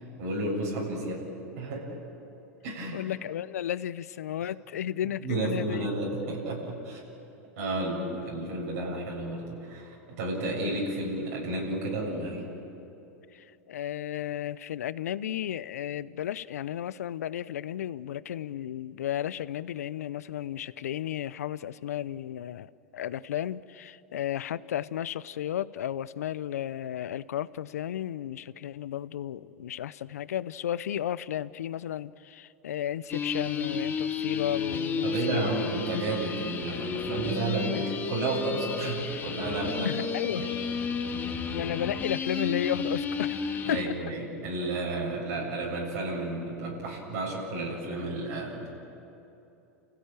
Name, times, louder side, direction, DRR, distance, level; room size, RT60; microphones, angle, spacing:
voice 1, 0.2-1.2 1.6-2.0 2.6-3.0 5.2-7.0 7.6-12.5 35.0-40.0 40.3-40.6 43.7-48.7, right 2 dB, 70° right, -3 dB, 7.6 m, -32 dB
voice 2, 2.9-5.9 13.3-35.6 37.7-37.9 39.8-40.4 41.5-43.9, left 11 dB, 80° left, 17 dB, 0.7 m, -33 dB
sound 1, 33.1-43.8, left 5 dB, 25° left, 2.6 m, -32 dB
29.5 x 16.5 x 9.1 m, 2.9 s
hypercardioid pair, 100°, 8 cm